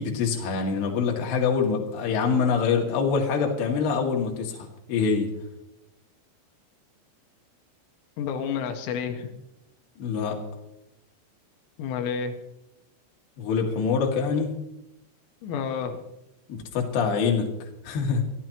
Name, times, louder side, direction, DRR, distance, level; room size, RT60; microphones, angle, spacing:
voice 1, 0.0-5.3 10.0-10.4 13.4-14.5 16.5-17.5 17.8-18.2, left 5 dB, 55° left, 0 dB, 3.9 m, -25 dB
voice 2, 8.2-9.3 11.8-12.4 15.4-16.0, left 7 dB, 85° left, 4 dB, 4.0 m, -30 dB
24.5 x 16.5 x 3.0 m, 0.88 s
omnidirectional pair, 5.9 m